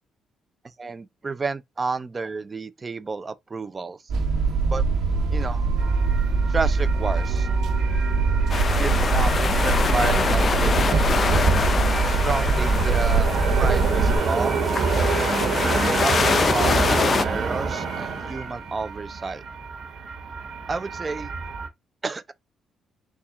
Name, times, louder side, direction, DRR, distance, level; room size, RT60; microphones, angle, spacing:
voice 1, 0.8-4.0 4.7-4.8 5.3-5.7 6.5-7.5 8.6-11.2 12.1-13.3 13.6-14.5 15.8-19.4 20.7-21.3 22.0-22.3, right 4 dB, 30° right, 0.4 m, -30 dB
sound 1, 4.1-14.2, right 4 dB, 75° right, 1.2 m, -22 dB
sound 2, 5.8-21.7, right 5 dB, 55° right, 1.3 m, -28 dB
sound 3, 8.5-17.2, left 5 dB, 40° left, 0.5 m, -25 dB
4.1 x 2.4 x 3.5 m
cardioid pair, 90°, 0 cm